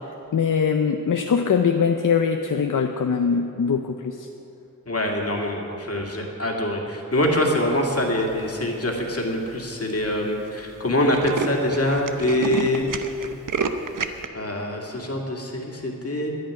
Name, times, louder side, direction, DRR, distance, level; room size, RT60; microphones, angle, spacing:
voice 1, 0.3-4.3, left 6 dB, 65° left, 5 dB, 0.7 m, -22 dB
voice 2, 4.9-12.9 14.3-16.3, left 1 dB, 45° left, 0 dB, 2.2 m, -24 dB
Tools, 8.2-8.6 9.2-9.3 9.6-9.7 9.9-10.1 10.4-10.5 10.8-14.3, right 5 dB, 65° right, 0.8 m, -29 dB
11.0 x 10.0 x 9.6 m, 2.8 s
wide cardioid pair, 100°, 34 cm